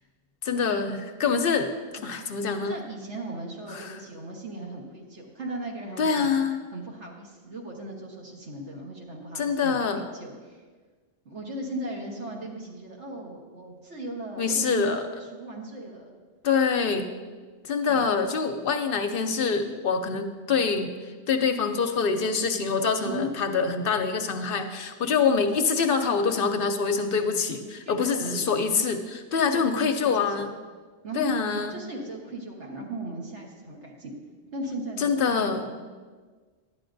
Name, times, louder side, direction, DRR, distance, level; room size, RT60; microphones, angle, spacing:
voice 1, 0.4-1.7 2.0-2.8 3.7-4.0 6.0-6.6 9.3-10.0 14.4-15.0 16.4-17.1 17.7-20.9 21.3-30.5 31.1-31.7 35.0-35.7, left 5 dB, 60° left, 7 dB, 0.7 m, -25 dB
voice 2, 2.6-6.3 6.7-10.6 11.2-14.9 15.2-16.1 17.9-18.0 23.0-23.3 27.8-28.5 29.4-30.5 31.0-31.3 31.7-34.1 34.5-35.6, right 1 dB, 80° right, -1 dB, 1.6 m, -37 dB
11.5 x 9.2 x 2.6 m, 1.4 s
omnidirectional pair, 1.2 m